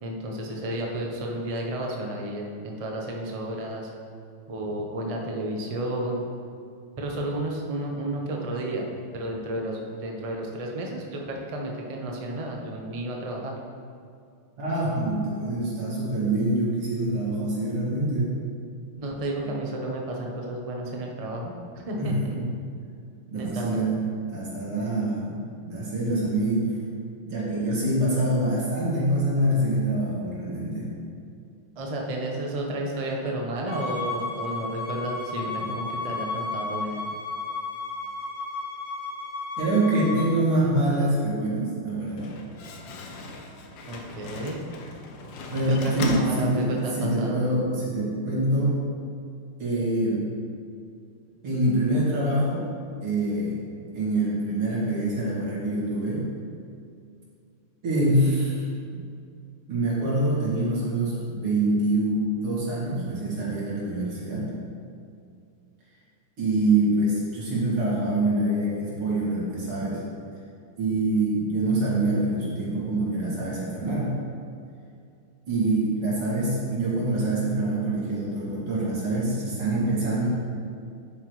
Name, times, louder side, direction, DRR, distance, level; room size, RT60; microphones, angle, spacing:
voice 1, 0.0-3.9 4.5-6.2 7.0-8.9 9.1-13.6 19.0-22.4 23.3-23.8 31.8-37.0 43.8-44.6 45.7-47.4, right 1 dB, 40° right, -1 dB, 0.5 m, -32 dB
voice 2, 14.6-18.3 19.4-19.5 22.0-22.5 23.3-24.0 24.3-25.4 25.7-26.7 27.2-30.9 35.6-35.7 39.6-42.3 45.5-48.8 49.6-50.3 51.4-52.7 53.0-53.6 53.9-56.3 57.8-58.7 58.9-59.0 59.7-64.5 66.4-70.0 70.8-74.2 75.5-80.3, right 1 dB, 80° right, -7 dB, 3.3 m, -25 dB
Bowed string instrument, 33.7-40.2, left 3 dB, 85° left, 3.0 m, -33 dB
Slam, 41.9-47.1, left 2 dB, 65° left, 1.4 m, -39 dB
10.5 x 8.0 x 3.2 m, 2.4 s
omnidirectional pair, 2.4 m